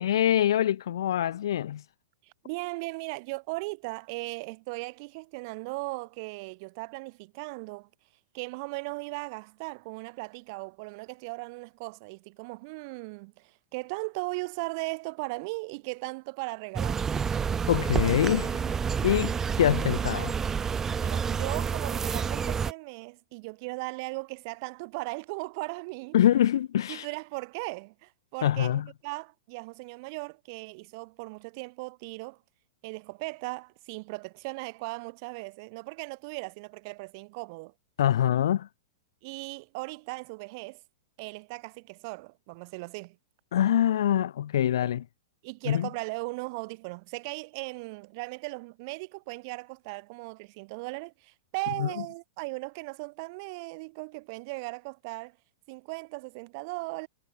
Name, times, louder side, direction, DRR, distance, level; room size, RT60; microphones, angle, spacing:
voice 1, 0.0-1.8 17.7-18.7 19.0-20.3 26.1-27.1 28.4-28.9 38.0-38.7 43.5-45.0 45.7-45.9 51.8-51.9, left 11 dB, 60° left, 0.3 m, -24 dB
voice 2, 2.2-7.9 8.3-17.1 21.0-26.2 26.9-32.4 32.8-37.7 39.2-40.8 41.2-43.2 44.8-44.9 45.4-55.4 55.7-57.1, right 28 dB, 45° right, 1.5 m, -38 dB
sound 1, 16.8-22.7, right 6 dB, 15° right, 0.3 m, -29 dB
figure-of-eight pair, 100°, 3 cm